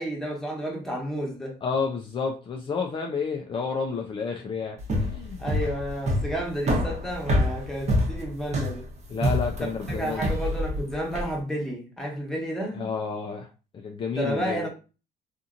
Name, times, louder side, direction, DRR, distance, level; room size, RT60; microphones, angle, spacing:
voice 1, 0.0-1.5 5.4-8.9 9.8-12.8 14.2-14.7, equal, 5° left, 1.1 m, -31 dB
voice 2, 1.6-5.4 9.1-10.2 12.7-13.5 13.7-14.7, left 5 dB, 30° left, 0.4 m, -30 dB
sound 1, 4.8-11.3, equal, 40° right, 0.9 m, -26 dB
2.8 x 2.5 x 2.5 m
cardioid pair, 110°, 17 cm